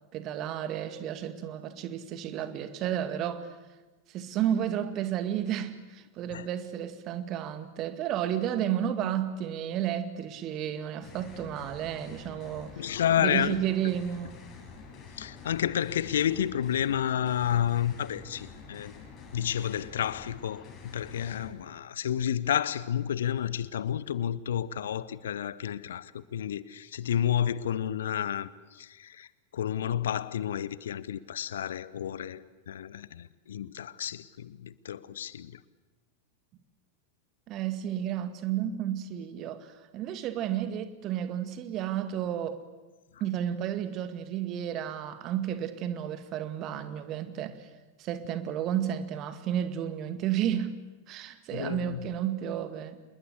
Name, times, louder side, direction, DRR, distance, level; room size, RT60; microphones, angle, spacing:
voice 1, 0.1-3.5 4.1-12.8 13.2-14.4 37.5-42.6 43.2-47.7 48.0-50.7 51.1-53.0, right 10 dB, 35° right, 10 dB, 2.1 m, -32 dB
sound 1, 11.0-21.5, left 5 dB, 35° left, 7.6 m, -48 dB
voice 2, 12.8-13.6 15.2-18.9 19.3-35.6 51.5-52.0, left 10 dB, 60° left, 19 dB, 0.9 m, -30 dB
27.5 x 21.0 x 8.2 m, 1.2 s
figure-of-eight pair, 90°, 0 cm